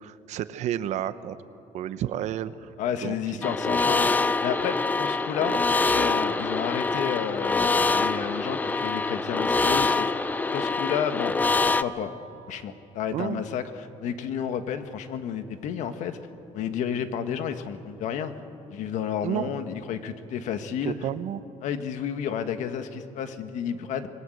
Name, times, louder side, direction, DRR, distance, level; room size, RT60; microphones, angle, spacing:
voice 1, 0.0-1.4 1.7-2.7 3.0-3.9 5.4-5.6 13.1-13.4 19.2-19.5 20.8-21.4, right 11 dB, 65° right, 13 dB, 1.0 m, -32 dB
voice 2, 2.8-4.1 4.4-5.5 5.9-10.1 10.5-11.3 11.6-12.1 12.5-16.2 16.5-18.3 18.7-20.9 21.6-24.1, left 8 dB, 75° left, 9 dB, 1.6 m, -31 dB
sound 1, 3.4-11.8, left 3 dB, 15° left, 0.5 m, -25 dB
26.5 x 21.0 x 7.9 m, 2.9 s
cardioid pair, 165°, 13 cm